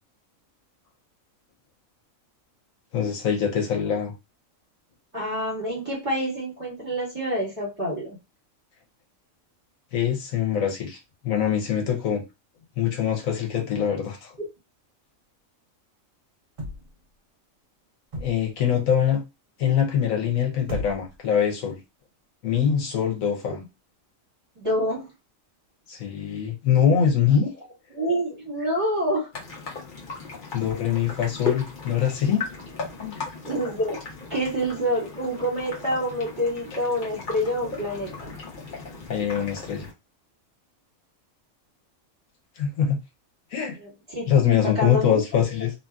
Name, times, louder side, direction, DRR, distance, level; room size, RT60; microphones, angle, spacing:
voice 1, 2.9-4.1 9.9-11.0 11.2-12.2 12.8-14.3 18.2-19.2 19.6-21.8 22.4-23.6 25.9-27.5 30.5-32.4 33.0-33.2 39.1-39.9 42.6-43.0 43.5-43.8 44.3-45.7, left 8 dB, 80° left, 1.2 m, -23 dB
voice 2, 5.1-8.2 14.4-14.5 23.5-23.6 24.6-25.1 27.9-29.3 33.4-34.0 34.3-38.3 43.8-45.2, equal, 25° right, 1.7 m, -27 dB
sound 1, 16.6-17.1 18.1-18.6 20.7-21.3 22.1-22.2, equal, 45° right, 1.2 m, -35 dB
sound 2, 29.3-39.9, left 5 dB, 40° left, 0.9 m, -36 dB
2.8 x 2.7 x 2.3 m
omnidirectional pair, 1.4 m